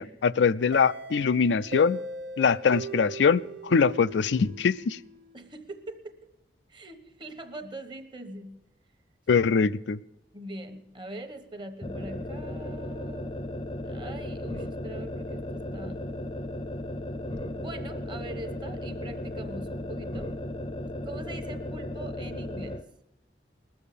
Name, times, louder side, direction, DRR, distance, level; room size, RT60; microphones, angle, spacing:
voice 1, 0.0-2.0 2.4-5.0 9.3-10.0, left 5 dB, 80° left, 14 dB, 0.4 m, -23 dB
sound 1, 0.7-5.4, right 2 dB, 65° right, 0.8 m, -39 dB
voice 2, 5.3-6.3 6.7-8.5 10.3-13.3 13.8-16.1 17.5-20.3 21.0-22.8, right 1 dB, 25° right, 8 dB, 1.1 m, -42 dB
sound 2, 11.8-22.9, left 1 dB, 30° left, 0.6 m, -35 dB
19.5 x 7.1 x 6.7 m, 0.94 s
head